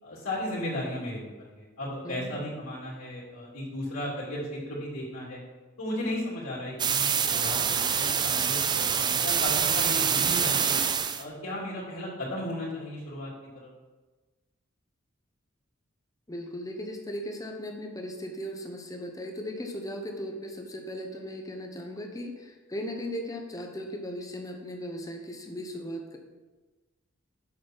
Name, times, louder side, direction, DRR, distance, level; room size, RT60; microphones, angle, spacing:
voice 1, 0.0-5.4 5.8-10.8 11.1-13.7, left 1 dB, 80° left, -8 dB, 2.7 m, -35 dB
sound 1, 6.8-11.2, right 7 dB, 20° right, 0.3 m, -26 dB
voice 2, 16.3-26.2, equal, 15° left, 3 dB, 1.0 m, -37 dB
7.7 x 6.4 x 4.6 m, 1.2 s
head